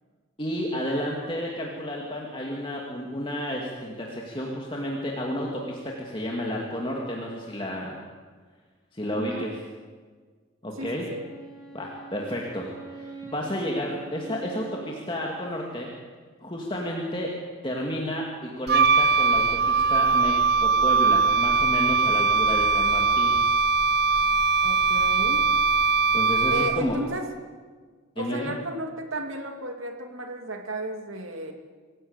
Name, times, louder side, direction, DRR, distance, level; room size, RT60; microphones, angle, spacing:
voice 1, 0.4-7.9 8.9-9.5 10.6-11.0 11.7-15.9 16.4-17.3 17.6-23.4 26.1-27.0 28.2-28.5, equal, 25° left, -2 dB, 2.4 m, -31 dB
voice 2, 9.2-9.5 10.8-11.3 24.6-25.4 26.5-27.3 28.2-31.5, right 1 dB, 75° right, 4 dB, 2.7 m, -33 dB
Wind instrument woodwind instrument, 11.1-15.9, right 3 dB, 20° right, 3.6 m, -44 dB
Wind instrument woodwind instrument 2, 18.7-27.0, right 4 dB, 50° right, 0.6 m, -21 dB
25.5 x 16.0 x 8.2 m, 1.5 s
head